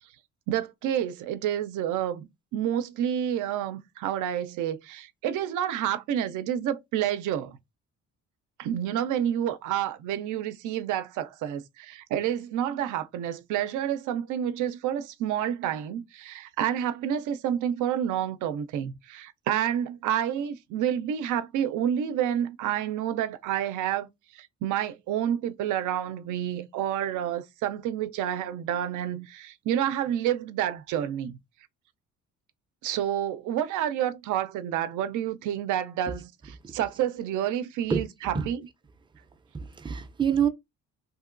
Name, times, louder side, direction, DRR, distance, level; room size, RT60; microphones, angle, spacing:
voice 1, 0.5-2.3 2.5-7.6 8.6-31.4 32.8-38.6, right 10 dB, 85° right, 0.5 m, -29 dB
voice 2, 39.5-40.5, right 7 dB, 15° right, 0.4 m, -26 dB
2.9 x 2.7 x 2.5 m
cardioid pair, 90°, 30 cm